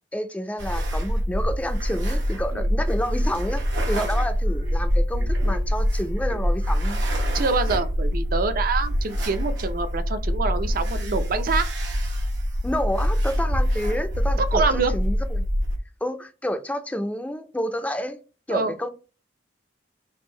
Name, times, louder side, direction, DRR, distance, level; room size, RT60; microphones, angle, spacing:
voice 1, 0.1-7.0 12.6-15.5 16.0-18.2 18.5-18.9, equal, 10° left, 0.4 m, -29 dB
sound 1, 0.6-15.8, equal, 85° right, 0.9 m, -25 dB
voice 2, 7.3-11.7 14.4-14.9 18.5-18.7, right 4 dB, 55° right, 0.5 m, -26 dB
3.5 x 2.6 x 4.3 m
head